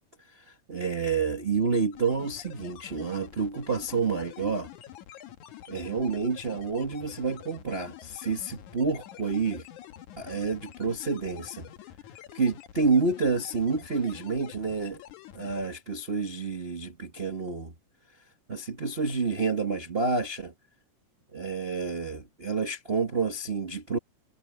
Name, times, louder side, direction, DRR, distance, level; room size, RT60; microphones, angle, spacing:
voice 1, 0.3-4.7 5.7-9.7 10.2-11.7 12.3-15.0 15.3-17.7 18.5-20.5 21.3-24.0, right 4 dB, 70° right, 0.5 m, -29 dB
sound 1, 1.9-15.7, left 10 dB, 70° left, 2.5 m, -47 dB
omnidirectional pair, 3.9 m